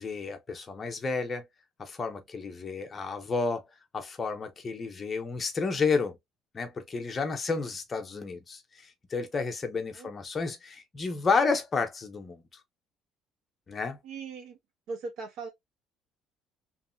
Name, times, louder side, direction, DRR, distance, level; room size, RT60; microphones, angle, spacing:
voice 1, 0.0-1.4 1.8-3.6 3.9-6.2 6.5-8.6 9.1-12.4 13.7-14.0, left 4 dB, 20° left, 0.8 m, -31 dB
voice 2, 14.0-14.6 14.9-15.5, right 4 dB, 60° right, 1.0 m, -39 dB
3.1 x 2.7 x 2.4 m
cardioid pair, 160°, 0 cm